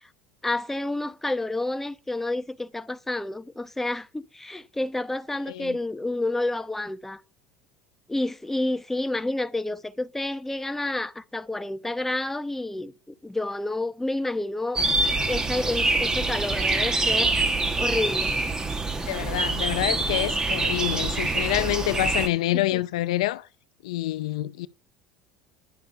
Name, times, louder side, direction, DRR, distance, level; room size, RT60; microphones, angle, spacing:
voice 1, 0.4-7.2 8.1-14.8 15.3-17.4 17.8-18.4 22.5-22.8, left 2 dB, 10° left, 0.9 m, -29 dB
sound 1, 14.8-22.3, right 3 dB, 20° right, 1.9 m, -25 dB
voice 2, 19.1-23.5 23.8-24.7, left 16 dB, 85° left, 0.6 m, -27 dB
10.5 x 7.1 x 6.7 m
supercardioid pair, 90°, 3 cm